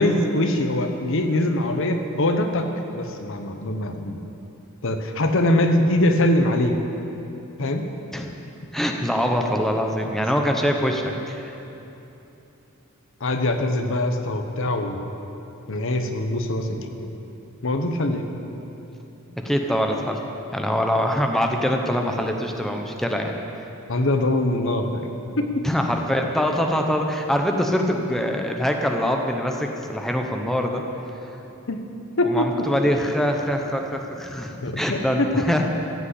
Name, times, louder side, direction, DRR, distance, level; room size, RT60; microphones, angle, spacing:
voice 1, 0.0-4.2 4.8-6.8 7.6-7.9 13.2-15.0 15.7-16.9 17.6-18.3 23.9-25.1 25.4-25.6 31.7-31.8 32.2-32.7 34.6-35.4, left 1 dB, 65° left, 6 dB, 1.1 m, -23 dB
voice 2, 8.7-11.5 19.4-20.2 20.5-23.4 25.6-30.8 31.3-31.4 32.2-35.7, equal, ahead, 2 dB, 0.9 m, -24 dB
15.5 x 8.1 x 8.4 m, 2.9 s
head